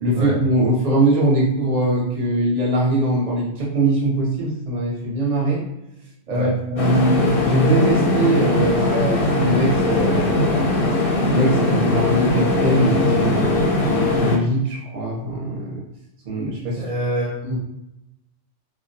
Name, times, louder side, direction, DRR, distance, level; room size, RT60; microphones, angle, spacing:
voice 1, 0.0-5.6 6.3-10.7 11.3-15.8 16.2-16.8 17.4-17.6, right 1 dB, 40° right, -3 dB, 0.7 m, -21 dB
sound 1, 6.8-14.4, left 2 dB, 60° left, 0.7 m, -20 dB
voice 2, 16.8-17.6, right 1 dB, 80° right, -6 dB, 0.3 m, -26 dB
2.3 x 2.1 x 2.6 m, 0.87 s
omnidirectional pair, 1.3 m